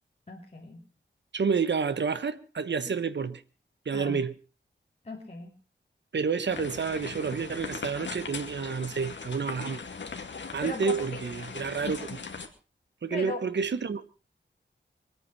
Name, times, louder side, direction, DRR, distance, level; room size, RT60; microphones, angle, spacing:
voice 1, 0.3-0.8 3.9-4.2 5.0-5.5 10.6-11.2 13.1-13.4, left 2 dB, 35° left, 3.0 m, -38 dB
voice 2, 1.3-3.4 3.8-4.3 6.1-9.8 10.5-12.2 13.0-14.1, right 5 dB, 65° right, 1.3 m, -29 dB
sound 1, 6.5-12.5, left 5 dB, 70° left, 2.5 m, -39 dB
24.0 x 9.6 x 5.6 m
wide cardioid pair, 105°, 20 cm